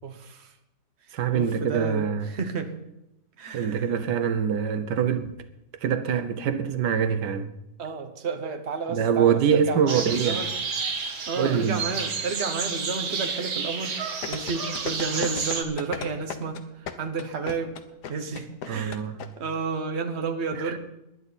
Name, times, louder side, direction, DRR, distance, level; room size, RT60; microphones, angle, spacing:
voice 1, 0.0-0.5 1.1-2.7 3.4-3.9 7.8-10.5 11.0-14.0 14.3-17.7 18.1-19.0 19.4-20.8, right 4 dB, 45° right, 1.5 m, -31 dB
voice 2, 1.1-2.3 3.5-5.4 5.8-7.5 8.9-10.4 11.4-11.8 18.7-19.2 20.6-20.8, right 7 dB, 85° right, 1.5 m, -24 dB
sound 1, 9.9-15.6, right 5 dB, 60° right, 1.9 m, -31 dB
sound 2, 14.2-19.3 19.5-19.6, left 7 dB, 80° left, 1.6 m, -34 dB
20.0 x 11.0 x 4.2 m
omnidirectional pair, 1.8 m